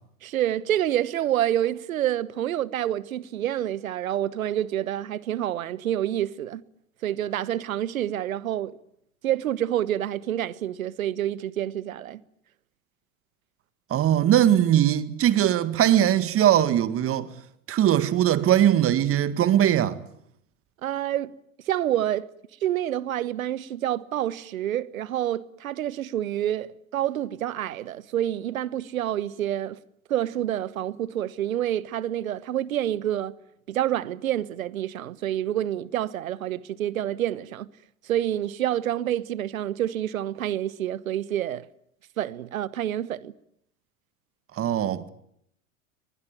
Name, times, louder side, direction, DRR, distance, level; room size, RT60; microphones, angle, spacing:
voice 1, 0.2-6.6 7.0-8.7 9.2-12.2 20.8-21.3 21.7-22.3 22.6-29.8 30.1-33.3 33.7-37.7 38.0-41.7 42.2-43.3, right 12 dB, 75° right, 1.2 m, -28 dB
voice 2, 13.9-17.3 17.7-20.0 44.6-45.1, right 11 dB, 30° right, 1.9 m, -20 dB
23.5 x 20.5 x 8.9 m
hypercardioid pair, 95°, 42 cm